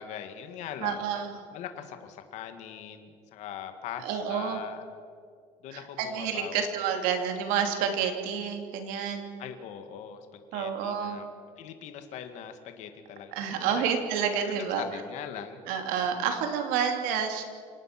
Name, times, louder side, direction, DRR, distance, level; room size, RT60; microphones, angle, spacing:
voice 1, 0.0-1.1 1.5-4.8 5.6-6.7 9.4-11.3 11.6-13.8 14.4-15.6, left 9 dB, 55° left, 7 dB, 2.0 m, -41 dB
voice 2, 0.8-1.3 4.0-4.6 5.7-9.3 10.5-11.2 13.3-14.8 15.7-17.4, right 7 dB, 80° right, 5 dB, 2.9 m, -29 dB
27.0 x 18.0 x 6.0 m, 2.2 s
cardioid pair, 160°, 14 cm